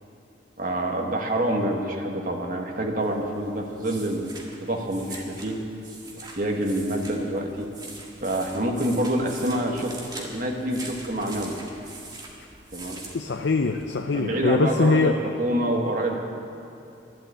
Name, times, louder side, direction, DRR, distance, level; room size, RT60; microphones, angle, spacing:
voice 1, 0.6-4.3 4.6-5.6 6.1-7.7 8.2-11.6 12.7-13.0 14.1-16.2, right 1 dB, 45° right, 1 dB, 1.5 m, -27 dB
sound 1, 3.0-14.0, right 2 dB, 20° right, 1.7 m, -43 dB
voice 2, 13.1-15.1, left 3 dB, 75° left, 6 dB, 0.6 m, -22 dB
12.0 x 11.5 x 8.5 m, 2.7 s
head